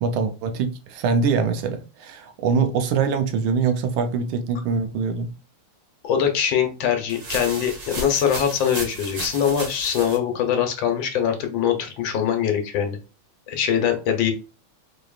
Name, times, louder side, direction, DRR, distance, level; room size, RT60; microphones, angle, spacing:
voice 1, 0.0-5.3, right 5 dB, 85° right, 8 dB, 1.6 m, -23 dB
voice 2, 6.0-13.0 13.5-14.3, left 8 dB, 70° left, 4 dB, 1.4 m, -22 dB
sound 1, 7.1-10.2, right 2 dB, 45° right, 1.3 m, -34 dB
4.6 x 2.9 x 2.4 m, 0.32 s
omnidirectional pair, 2.3 m